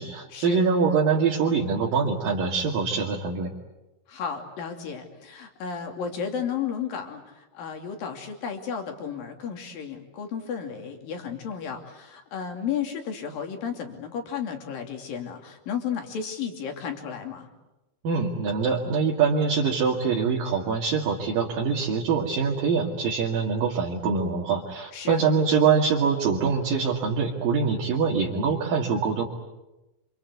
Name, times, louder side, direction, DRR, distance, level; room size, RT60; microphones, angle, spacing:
voice 1, 0.0-3.5 18.0-29.2, right 5 dB, 50° right, -2 dB, 3.5 m, -24 dB
voice 2, 4.1-17.5 24.9-25.3, left 7 dB, 50° left, 4 dB, 4.1 m, -33 dB
27.0 x 26.5 x 8.2 m, 1.0 s
omnidirectional pair, 5.7 m